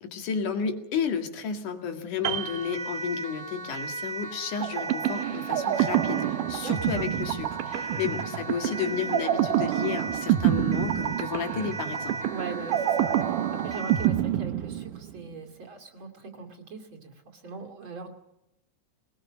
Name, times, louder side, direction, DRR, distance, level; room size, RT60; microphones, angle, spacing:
voice 1, 0.0-12.2, left 6 dB, 80° left, 5 dB, 3.5 m, -32 dB
Siren, 2.2-14.2, right 3 dB, 20° right, 1.3 m, -37 dB
Piano, 2.2-3.7 4.0-4.2, right 11 dB, 65° right, 2.1 m, -35 dB
sound 1, 4.6-15.3, right 12 dB, 90° right, 2.5 m, -27 dB
voice 2, 6.6-7.1 7.7-8.0 12.3-18.1, right 4 dB, 40° right, 3 dB, 2.9 m, -40 dB
21.0 x 20.5 x 6.3 m, 0.85 s
omnidirectional pair, 3.6 m